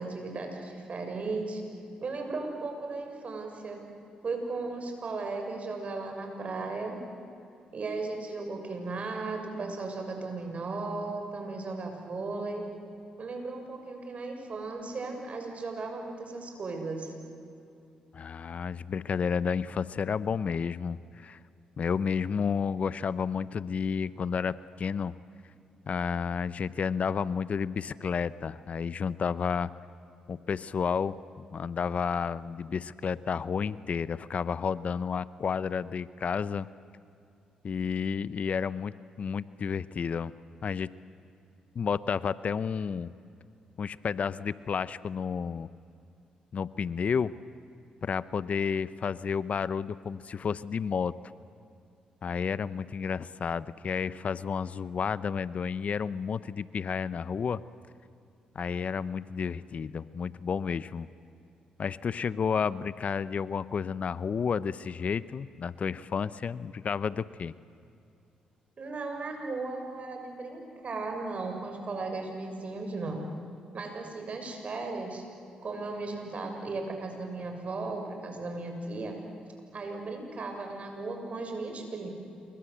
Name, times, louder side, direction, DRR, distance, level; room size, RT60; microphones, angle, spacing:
voice 1, 0.0-1.6 2.0-3.8 4.2-7.0 7.7-12.6 13.2-17.1 68.8-73.2 73.7-75.2 75.6-79.2 79.7-82.1, right 3 dB, 50° right, 3 dB, 6.8 m, -36 dB
voice 2, 18.1-21.4 21.8-25.1 25.9-29.7 30.3-36.7 37.6-40.3 40.6-40.9 41.7-43.1 43.8-45.7 46.5-47.3 48.0-51.2 52.2-57.6 58.5-61.1 61.8-67.5, left 6 dB, 55° left, 17 dB, 0.7 m, -31 dB
28.5 x 24.0 x 8.0 m, 2.6 s
supercardioid pair, 60°, 3 cm